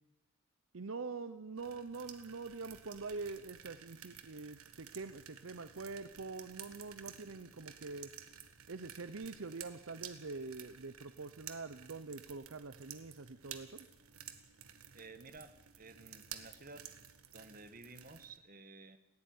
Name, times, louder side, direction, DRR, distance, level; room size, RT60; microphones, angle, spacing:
voice 1, 0.7-8.1 8.7-13.9, right 4 dB, 65° right, 12 dB, 0.8 m, -45 dB
sound 1, 1.6-18.4, right 9 dB, 85° right, 1.6 m, -53 dB
voice 2, 14.9-16.9 17.3-19.0, right 3 dB, 40° right, 10 dB, 1.4 m, -54 dB
19.5 x 15.5 x 9.5 m, 0.95 s
head